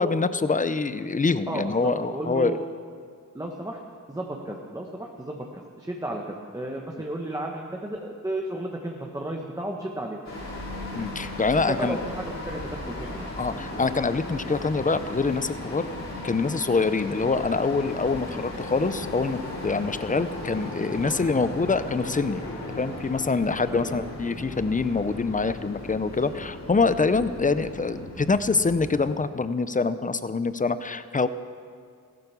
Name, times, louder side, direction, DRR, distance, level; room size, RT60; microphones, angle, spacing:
voice 1, 0.0-2.6 10.9-12.0 13.4-15.9 16.2-22.4 22.8-31.3, left 4 dB, 25° left, 12 dB, 0.6 m, -25 dB
voice 2, 1.5-2.6 3.3-3.8 4.1-10.2 11.6-13.3 21.0-21.2 23.7-24.1, right 1 dB, 10° right, 0 dB, 1.3 m, -33 dB
sound 1, 10.2-29.1, left 1 dB, 55° left, 4.3 m, -36 dB
16.0 x 12.0 x 7.0 m, 2.1 s
wide cardioid pair, 105°, 32 cm